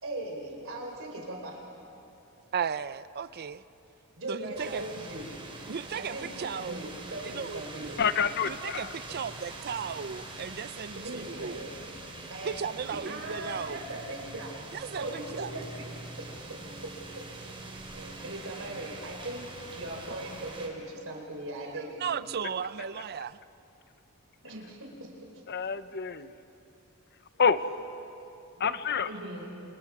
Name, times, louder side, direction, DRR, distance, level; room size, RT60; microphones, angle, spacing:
voice 1, 0.0-1.6 4.2-5.4 5.9-8.0 9.1-9.2 11.0-11.7 12.3-12.5 12.9-14.6 14.9-17.2 17.9-22.1 24.4-25.4 28.6-28.7 29.1-29.6, right 1 dB, 65° right, 1 dB, 4.0 m, -40 dB
voice 2, 2.5-3.6 4.3-4.8 5.7-6.9 7.2-7.9 8.5-11.6 12.4-13.8 14.7-15.5 21.6-23.4, right 7 dB, 45° right, 16 dB, 0.5 m, -36 dB
sound 1, 4.5-20.7, right 2 dB, 25° right, 3.2 m, -44 dB
voice 3, 8.0-8.9 25.5-26.3 27.4-27.6 28.6-29.1, left 6 dB, 50° left, 12 dB, 0.8 m, -27 dB
28.0 x 27.5 x 4.8 m, 2.8 s
head